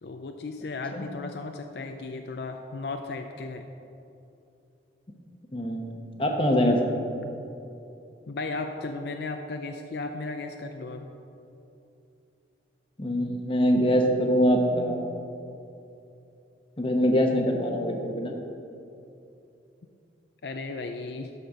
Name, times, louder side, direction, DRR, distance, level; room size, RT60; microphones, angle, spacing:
voice 1, 0.0-3.7 8.3-11.1 20.4-21.3, left 3 dB, 65° left, 5 dB, 0.5 m, -35 dB
voice 2, 5.5-5.9 6.2-6.9 13.0-15.1 16.8-18.3, equal, 30° left, 2 dB, 0.9 m, -23 dB
11.5 x 4.3 x 6.2 m, 2.7 s
head